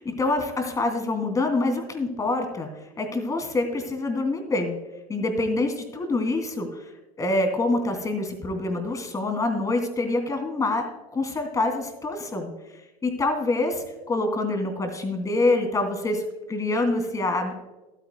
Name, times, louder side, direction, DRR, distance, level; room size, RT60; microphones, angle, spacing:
voice 1, 0.0-2.7 3.0-4.8 5.1-6.9 7.2-12.5 13.0-17.5, left 2 dB, 20° left, 5 dB, 2.8 m, -26 dB
14.5 x 12.0 x 2.3 m, 1.0 s
supercardioid pair, 115°, 18 cm